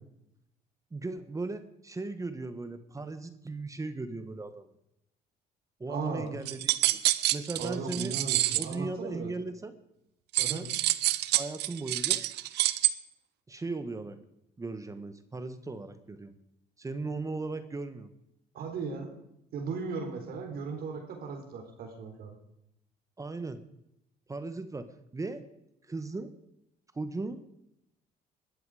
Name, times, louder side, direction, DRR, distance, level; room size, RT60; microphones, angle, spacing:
voice 1, 0.9-4.7 5.8-7.0 7.3-8.1 8.5-9.7 10.4-10.7 11.3-12.2 13.5-14.2 14.6-16.3 16.8-18.1 23.2-23.6 24.3-24.9 25.1-25.4 25.9-26.3 26.9-27.4, right 3 dB, 20° right, 10 dB, 1.4 m, -37 dB
voice 2, 5.9-6.3 7.6-9.3 10.4-10.7 18.5-19.1 19.5-22.4, right 4 dB, 65° right, 5 dB, 3.9 m, -37 dB
sound 1, 6.5-8.7 10.3-12.9, right 16 dB, 80° right, 0.9 m, -27 dB
21.0 x 13.0 x 5.0 m, 0.82 s
cardioid pair, 110°, 17 cm